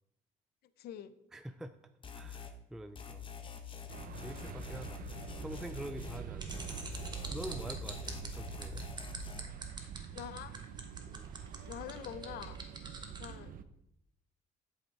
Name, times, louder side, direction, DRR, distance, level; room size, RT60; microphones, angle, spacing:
voice 1, 0.8-1.2 10.1-10.6 11.7-12.6 13.2-13.5, left 10 dB, 70° left, 14 dB, 0.6 m, -45 dB
voice 2, 1.3-1.8 2.1-3.3 4.2-5.0 5.4-6.7 7.3-8.8 11.0-11.3, equal, 5° right, 9 dB, 0.4 m, -46 dB
sound 1, 2.0-2.6 3.0-6.2 6.5-9.4, left 7 dB, 30° left, 1.0 m, -46 dB
sound 2, 3.9-13.6, right 8 dB, 55° right, 0.6 m, -45 dB
sound 3, 6.4-13.3, right 4 dB, 25° right, 1.2 m, -45 dB
7.8 x 6.4 x 4.7 m, 0.80 s
cardioid pair, 110°, 17 cm